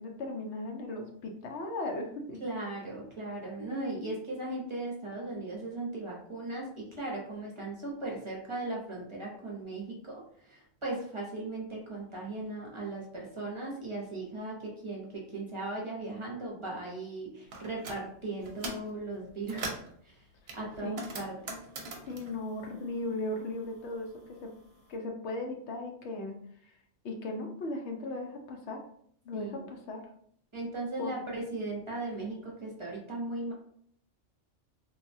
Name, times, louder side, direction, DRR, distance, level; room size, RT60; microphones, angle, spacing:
voice 1, 0.0-2.4 20.8-21.0 22.1-24.5 24.9-26.8 27.0-28.8 29.2-30.0 31.0-31.1, left 2 dB, 75° left, 3 dB, 0.9 m, -37 dB
voice 2, 2.4-19.7 20.0-20.2 20.5-21.5 29.3-29.7 30.5-33.5, right 2 dB, 30° right, -3 dB, 0.6 m, -38 dB
sound 1, 17.5-18.0 18.4-18.9 19.3-19.9 20.5-23.4 23.7-24.8, right 2 dB, 65° right, 0.8 m, -41 dB
3.2 x 2.2 x 2.6 m, 0.65 s
omnidirectional pair, 1.2 m